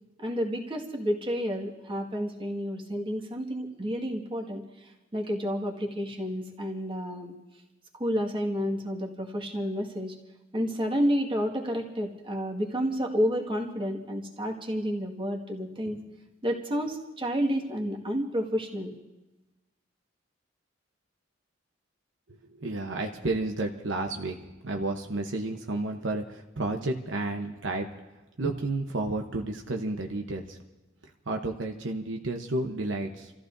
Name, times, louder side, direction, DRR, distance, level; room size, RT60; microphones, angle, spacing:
voice 1, 0.2-7.3 7.9-10.2 10.5-16.0 16.4-18.9, equal, 25° right, 0 dB, 1.9 m, -30 dB
voice 2, 22.5-24.4 24.6-27.9 28.4-30.6 31.3-33.3, right 2 dB, 70° right, 3 dB, 1.0 m, -31 dB
29.5 x 14.5 x 2.7 m, 1.1 s
head